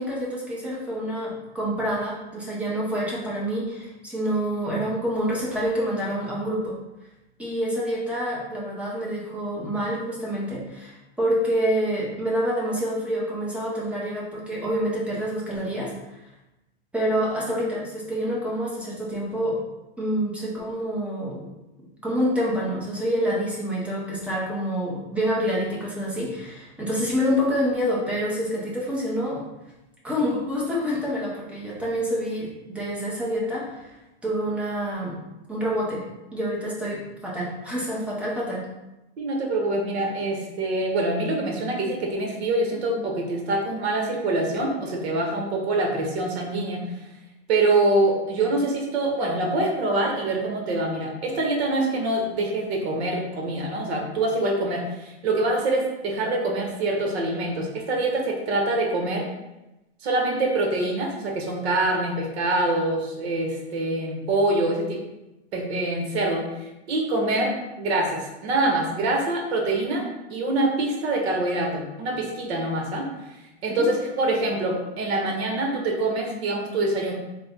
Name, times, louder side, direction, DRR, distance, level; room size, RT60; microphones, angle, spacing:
voice 1, 0.0-6.7 7.4-15.9 16.9-19.6 20.0-21.5 22.0-29.4 30.0-33.9 34.2-35.2 35.5-36.0 36.3-38.6 73.7-73.9, equal, 5° right, -5 dB, 0.6 m, -27 dB
voice 2, 39.2-46.8 47.5-59.2 60.0-64.8 65.5-67.5 67.8-73.1 73.6-77.1, right 2 dB, 70° right, 1 dB, 1.0 m, -25 dB
3.4 x 2.1 x 3.5 m, 0.97 s
supercardioid pair, 145°, 33 cm